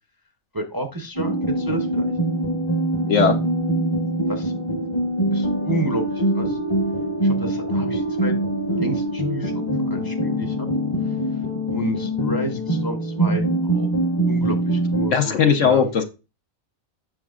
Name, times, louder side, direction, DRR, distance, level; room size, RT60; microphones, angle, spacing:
voice 1, 0.5-2.1 4.3-4.5 5.3-6.6 7.2-8.3 8.6-10.7 11.0-11.1 11.7-13.9 14.3-15.9, right 1 dB, 20° right, 3 dB, 0.6 m, -31 dB
sound 1, 1.1-15.1, right 1 dB, 25° left, 0.8 m, -23 dB
voice 2, 3.1-3.4 15.1-16.0, left 6 dB, 65° left, 6 dB, 1.2 m, -18 dB
7.5 x 5.9 x 2.4 m, 0.29 s
omnidirectional pair, 1.4 m